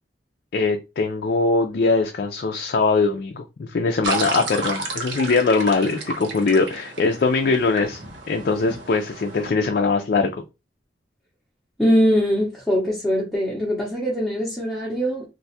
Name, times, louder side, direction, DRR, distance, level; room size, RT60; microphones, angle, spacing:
voice 1, 0.5-8.0 8.3-10.3, left 4 dB, 55° left, 0.4 m, -21 dB
sound 1, 4.0-9.5, right 2 dB, 85° right, 0.9 m, -31 dB
voice 2, 11.8-15.2, equal, ahead, 0.8 m, -22 dB
2.5 x 2.3 x 4.0 m
head